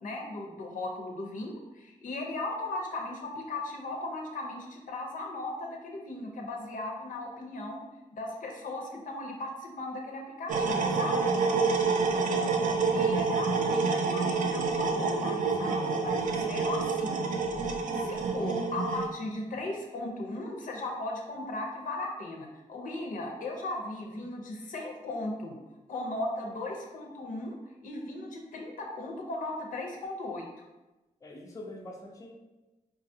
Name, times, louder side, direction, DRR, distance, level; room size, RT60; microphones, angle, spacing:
voice 1, 0.0-7.8 8.1-11.2 12.9-17.2 18.0-25.6 25.9-27.5 27.8-30.5, left 2 dB, 85° left, 0 dB, 0.7 m, -37 dB
sound 1, 10.5-19.1, right 4 dB, 80° right, 0.4 m, -28 dB
voice 2, 11.9-12.6 31.2-32.3, left 1 dB, 25° left, 0 dB, 0.4 m, -45 dB
4.7 x 2.4 x 2.6 m, 1.1 s
wide cardioid pair, 175°, 13 cm